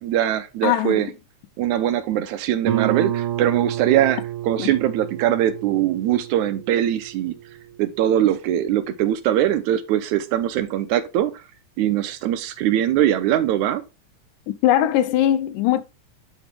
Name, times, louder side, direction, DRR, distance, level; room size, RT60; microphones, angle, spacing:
voice 1, 0.0-1.1 1.6-7.3 7.8-11.3 11.8-13.8, right 11 dB, 80° right, 1.8 m, -21 dB
voice 2, 0.6-1.1 4.6-4.7 14.6-15.8, left 12 dB, 90° left, 2.3 m, -20 dB
Guitar, 2.7-8.1, right 12 dB, 60° right, 1.7 m, -29 dB
10.0 x 4.0 x 3.5 m
omnidirectional pair, 3.7 m